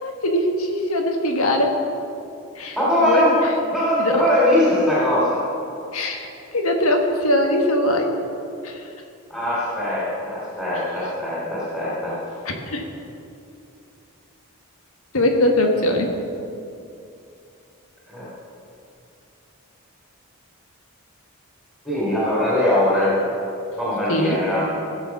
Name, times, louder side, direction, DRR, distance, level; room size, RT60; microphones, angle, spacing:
voice 1, 0.0-1.7 2.6-2.8 3.0-3.2 4.0-4.1 5.9-6.3 6.5-8.1 8.6-8.7 12.5-12.8 15.1-16.1 24.1-24.4, left 1 dB, 80° left, 3 dB, 1.5 m, -21 dB
voice 2, 2.7-3.4 3.7-5.4 9.3-12.2 18.1-18.3 21.8-23.2 23.8-24.7, left 1 dB, 5° left, -9 dB, 3.0 m, -21 dB
16.0 x 7.1 x 5.9 m, 2.6 s
head